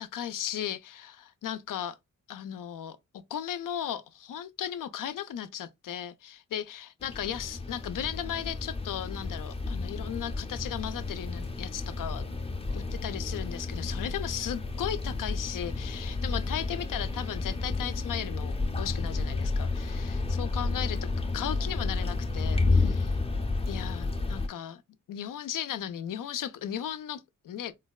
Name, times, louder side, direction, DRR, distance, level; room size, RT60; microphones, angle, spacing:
voice 1, 0.0-2.0 2.3-3.0 3.3-12.2 12.7-21.1 21.3-23.2 23.7-24.8 25.1-27.7, left 10 dB, 75° left, 0.5 m, -36 dB
sound 1, 7.0-24.5, left 3 dB, 20° left, 0.5 m, -31 dB
3.9 x 2.2 x 2.2 m
wide cardioid pair, 85°, 33 cm